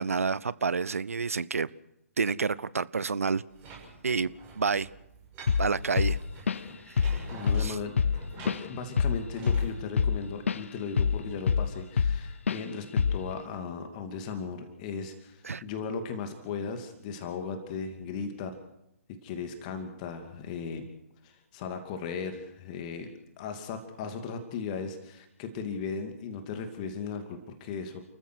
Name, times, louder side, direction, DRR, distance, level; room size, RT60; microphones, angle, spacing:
voice 1, 0.0-1.7 2.2-3.4 4.0-4.9 5.6-6.2 6.9-7.3 7.6-7.8 15.4-15.6, right 5 dB, 65° right, 20 dB, 0.7 m, -29 dB
sound 1, 3.5-9.7, right 3 dB, 20° right, 6.5 m, -49 dB
Drum kit / Drum, 5.5-5.7 6.0-6.7 7.0-7.2 7.5-10.6 11.0-12.2 12.5-12.6 13.0-13.3, left 6 dB, 55° left, 0.7 m, -26 dB
voice 2, 7.3-18.5 19.2-20.9 21.2-23.1 23.4-28.0, left 5 dB, 30° left, 7 dB, 2.5 m, -37 dB
30.0 x 14.5 x 6.4 m, 0.82 s
figure-of-eight pair, 130°, 8 cm